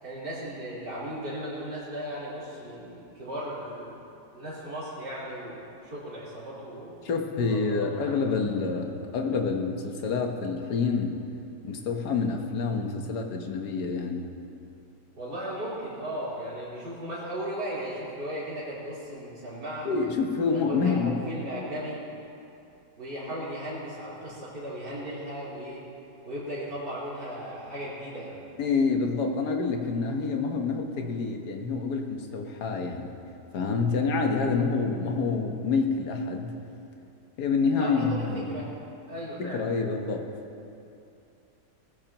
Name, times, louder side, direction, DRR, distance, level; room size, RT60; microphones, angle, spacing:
voice 1, 0.0-4.0 4.3-7.1 7.5-8.2 15.2-19.9 20.4-22.0 23.0-25.8 26.2-28.4 37.8-38.7 39.1-39.6, equal, 80° right, -11 dB, 4.6 m, -36 dB
voice 2, 7.0-11.1 11.6-14.3 19.8-21.2 28.6-33.1 33.5-36.6 37.4-38.7 39.4-40.3, left 4 dB, 70° left, 3 dB, 1.7 m, -27 dB
19.5 x 15.0 x 3.0 m, 2.7 s
omnidirectional pair, 1.8 m